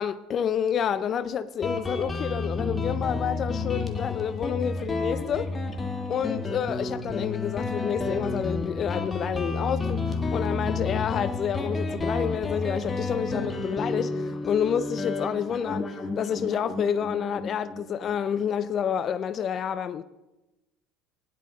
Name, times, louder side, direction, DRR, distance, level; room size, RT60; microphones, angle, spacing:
voice 1, 0.0-5.5 6.1-20.0, left 8 dB, 45° left, 0.4 m, -29 dB
Guitar, 1.6-18.8, left 3 dB, 25° left, 1.5 m, -31 dB
16.0 x 10.5 x 3.8 m
hypercardioid pair, 75°, 0 cm